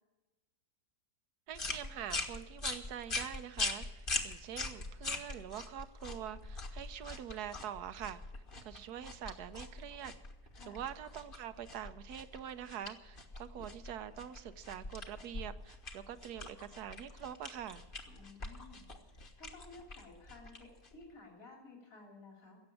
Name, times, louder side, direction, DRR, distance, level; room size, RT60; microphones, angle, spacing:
sound 1, 1.5-21.1, left 3 dB, 35° left, 1.6 m, -43 dB
voice 1, 1.5-8.2 8.6-10.1 10.7-17.8, right 10 dB, 80° right, 12 dB, 1.3 m, -45 dB
voice 2, 10.5-10.9 18.2-22.6, left 3 dB, 60° left, 0 dB, 3.4 m, -55 dB
16.5 x 7.4 x 9.9 m, 1.2 s
omnidirectional pair, 1.7 m